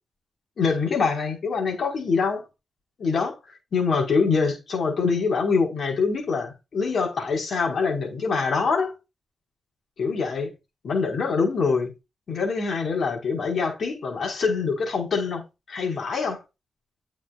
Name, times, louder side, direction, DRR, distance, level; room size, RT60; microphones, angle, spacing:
voice 1, 0.6-2.4 3.0-3.4 3.7-8.9 10.0-10.5 10.8-11.9 12.3-15.4 15.7-16.4, left 4 dB, 65° left, 5.4 m, -24 dB
9.7 x 7.4 x 2.6 m
cardioid pair, 60°, 0 cm